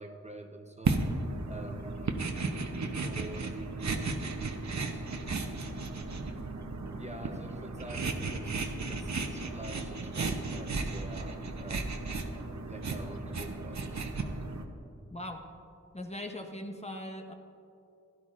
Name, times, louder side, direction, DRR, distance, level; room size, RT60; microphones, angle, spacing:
voice 1, 0.0-2.2 3.0-4.5 4.9-5.1 6.9-11.9 12.6-14.1, right 2 dB, 20° right, 3 dB, 0.8 m, -46 dB
sound 1, 0.8-14.6, right 3 dB, 65° right, 0.8 m, -35 dB
voice 2, 15.1-15.4 15.9-17.3, left 1 dB, 20° left, 3 dB, 0.8 m, -40 dB
16.0 x 11.5 x 2.5 m, 2.7 s
wide cardioid pair, 65°, 30 cm